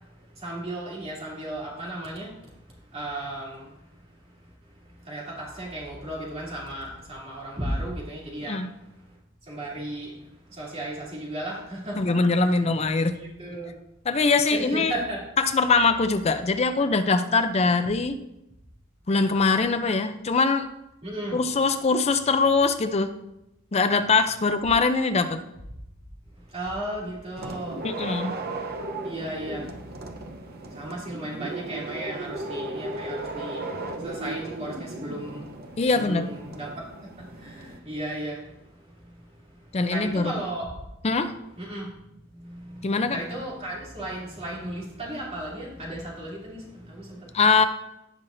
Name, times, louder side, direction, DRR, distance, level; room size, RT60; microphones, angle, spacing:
voice 1, 0.3-2.5 2.9-3.7 4.8-8.7 9.5-10.2 10.5-12.7 13.1-13.7 14.5-15.2 21.0-21.4 26.5-27.8 29.0-30.0 30.4-36.8 37.3-39.2 39.5-39.6 39.9-40.8 41.6-41.9 42.2-47.3, right 1 dB, 30° right, -5 dB, 2.9 m, -35 dB
voice 2, 12.0-13.2 14.1-14.9 15.4-18.2 19.1-20.7 21.3-23.2 23.7-25.4 27.8-28.3 35.8-36.3 39.7-40.4 41.0-41.3 42.8-43.2 47.3-47.6, left 4 dB, 30° left, 9 dB, 0.4 m, -22 dB
sound 1, 27.3-37.8, right 2 dB, 45° right, 0.8 m, -36 dB
16.5 x 5.7 x 2.6 m, 0.86 s
head